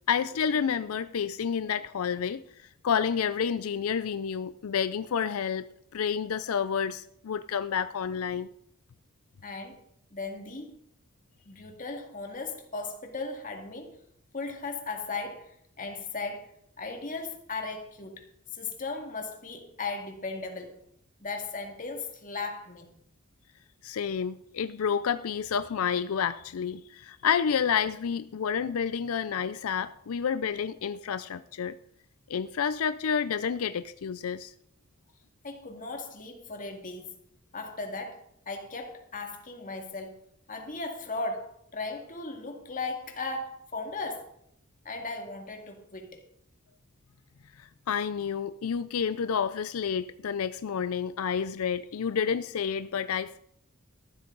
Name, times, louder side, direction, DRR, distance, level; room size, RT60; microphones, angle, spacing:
voice 1, 0.1-5.6 5.9-8.5 23.8-31.7 32.3-34.5 47.6-53.4, left 7 dB, 85° left, 0.5 m, -29 dB
voice 2, 9.4-9.8 10.1-10.8 11.4-14.0 14.3-18.2 18.5-20.8 21.2-22.9 35.4-37.1 37.5-40.2 40.5-44.3 44.8-46.2, left 3 dB, 40° left, 2.2 m, -37 dB
14.0 x 12.0 x 3.9 m
head